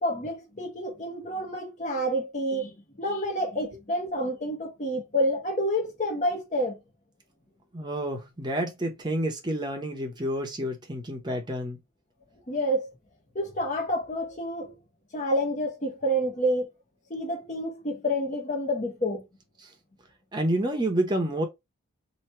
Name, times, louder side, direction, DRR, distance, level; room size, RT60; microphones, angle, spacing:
voice 1, 0.0-6.8 12.5-12.9 13.3-14.7 15.1-16.7 17.1-19.2, equal, 35° left, 1.0 m, -28 dB
voice 2, 7.7-11.8 19.6-19.7 20.3-21.5, right 1 dB, 20° right, 0.8 m, -29 dB
3.0 x 2.8 x 4.3 m
head